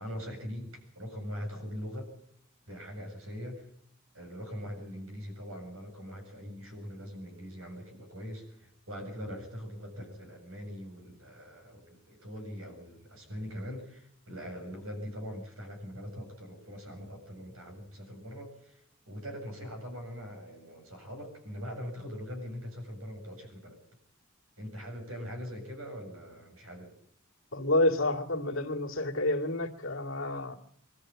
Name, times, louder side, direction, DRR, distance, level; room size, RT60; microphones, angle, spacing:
voice 1, 0.0-2.1 2.7-3.7 4.1-23.8 24.6-26.9, equal, 80° right, 4 dB, 7.6 m, -42 dB
voice 2, 27.5-30.6, left 1 dB, 70° left, 0 dB, 2.4 m, -29 dB
23.5 x 13.5 x 9.1 m, 0.66 s
head